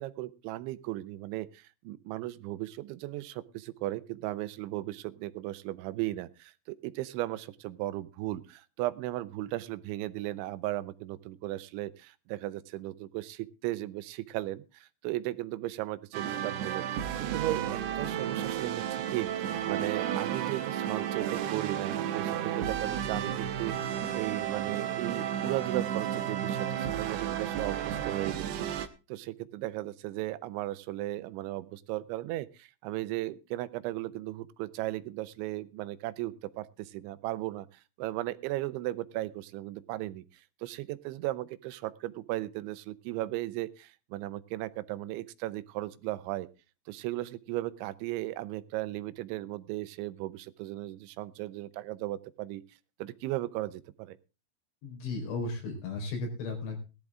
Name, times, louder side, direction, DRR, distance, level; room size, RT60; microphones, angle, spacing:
voice 1, 0.0-17.6 18.0-37.7 38.0-40.2 40.6-46.5 46.9-52.6 53.0-54.2, right 16 dB, 90° right, 15 dB, 3.2 m, -36 dB
sound 1, 16.1-28.9, right 10 dB, 75° right, 3.0 m, -32 dB
voice 2, 54.8-56.8, left 3 dB, 85° left, 3 dB, 6.6 m, -35 dB
17.5 x 12.0 x 3.6 m, 0.31 s
omnidirectional pair, 5.2 m